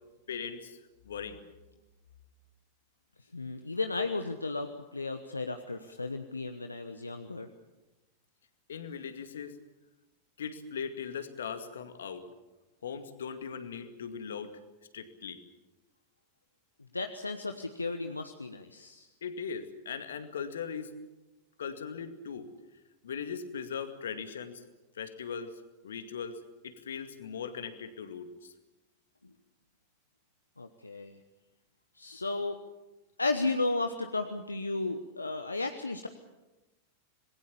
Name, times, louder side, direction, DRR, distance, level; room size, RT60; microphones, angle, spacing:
voice 1, 0.3-0.8 1.0-1.4 8.7-9.6 10.4-12.3 12.8-14.5 14.9-15.4 19.2-20.9 21.6-22.5 23.0-24.6 25.0-25.6 25.8-28.5, left 6 dB, 65° left, 9 dB, 2.2 m, -39 dB
voice 2, 3.3-7.5 16.9-19.1 30.6-31.2 32.0-32.6 33.2-36.1, left 3 dB, 80° left, 7 dB, 1.1 m, -34 dB
26.5 x 21.0 x 7.2 m, 1.1 s
figure-of-eight pair, 90°, 0 cm